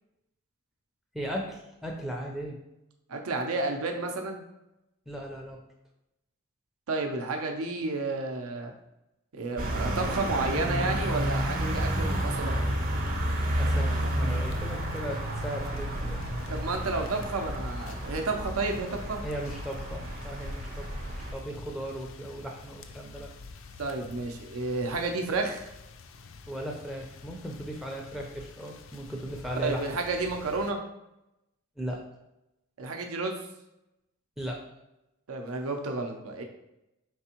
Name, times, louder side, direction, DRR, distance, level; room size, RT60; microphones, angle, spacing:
voice 1, 1.1-2.6 5.1-5.6 13.6-16.2 19.2-20.9 21.3-23.3 26.5-29.9 31.8-32.0 34.4-34.6, equal, ahead, 0 dB, 0.4 m, -37 dB
voice 2, 3.1-4.4 6.9-8.7 9.3-12.6 16.5-19.2 23.8-25.6 29.6-30.8 32.8-33.4 35.3-36.4, right 3 dB, 80° right, 3 dB, 0.6 m, -31 dB
sound 1, 9.6-21.3, right 1 dB, 40° right, 0.6 m, -31 dB
sound 2, 13.9-30.7, left 3 dB, 65° left, 0.4 m, -45 dB
4.7 x 3.4 x 2.9 m, 0.89 s
head